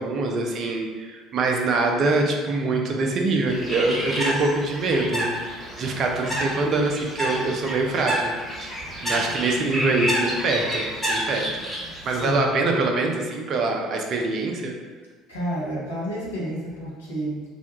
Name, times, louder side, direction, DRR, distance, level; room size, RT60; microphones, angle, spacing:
voice 1, 0.0-8.3 8.6-11.5 11.9-14.7, right 3 dB, 45° right, 2 dB, 0.4 m, -24 dB
Bird, 3.5-12.3, equal, 5° left, 0.9 m, -29 dB
voice 2, 12.2-12.6 15.3-17.4, equal, 80° left, -6 dB, 0.7 m, -30 dB
2.4 x 2.2 x 2.8 m, 1.4 s
figure-of-eight pair, 60°, 0 cm